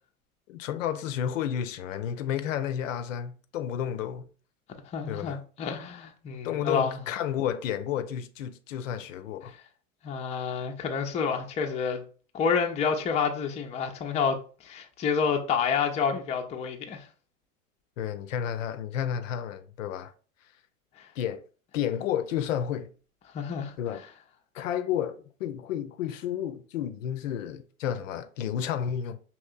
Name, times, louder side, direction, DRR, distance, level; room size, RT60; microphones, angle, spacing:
voice 1, 0.5-4.3 5.1-5.4 6.3-9.5 18.0-20.1 21.2-21.4 21.7-22.9 23.8-24.0 24.5-29.2, left 9 dB, 65° left, 0.5 m, -31 dB
voice 2, 4.9-7.0 10.0-12.0 12.3-17.1 21.0-21.1 23.3-23.7, left 6 dB, 15° left, 0.5 m, -29 dB
5.2 x 2.9 x 2.4 m
figure-of-eight pair, 90°, 42 cm